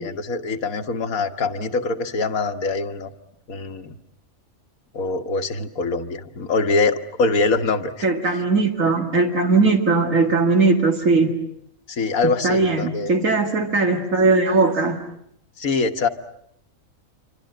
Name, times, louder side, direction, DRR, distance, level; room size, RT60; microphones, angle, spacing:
voice 1, 0.0-3.1 3.5-4.0 4.9-8.4 11.9-13.1 15.6-16.1, left 3 dB, 90° left, 7 dB, 1.9 m, -24 dB
voice 2, 8.0-11.4 12.4-15.0, right 3 dB, 70° right, 3 dB, 2.4 m, -19 dB
27.5 x 25.0 x 7.8 m, 0.73 s
omnidirectional pair, 1.4 m